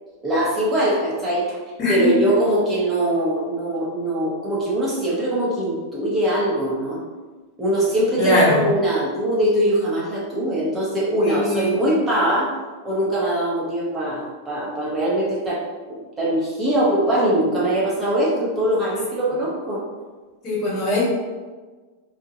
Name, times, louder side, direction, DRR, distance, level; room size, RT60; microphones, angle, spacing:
voice 1, 0.2-1.6 1.9-7.0 7.6-12.5 12.8-19.8, right 1 dB, 15° right, -6 dB, 0.7 m, -22 dB
voice 2, 1.8-2.1 8.2-8.7 11.2-11.8 20.4-21.1, left 1 dB, 20° left, -7 dB, 0.9 m, -20 dB
2.8 x 2.1 x 3.6 m, 1.4 s
supercardioid pair, 170°, 0 cm